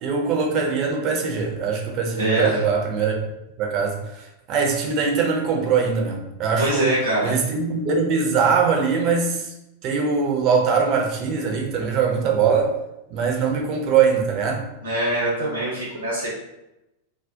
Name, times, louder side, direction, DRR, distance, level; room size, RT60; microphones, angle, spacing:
voice 1, 0.0-3.2 3.6-6.9 7.2-9.5 9.8-12.7 13.1-14.6, right 5 dB, 40° right, 1 dB, 0.5 m, -22 dB
voice 2, 2.2-2.6 6.6-7.3 14.8-16.3, right 1 dB, 75° right, -5 dB, 0.7 m, -23 dB
2.3 x 2.1 x 2.6 m, 0.91 s
figure-of-eight pair, 90°, 0 cm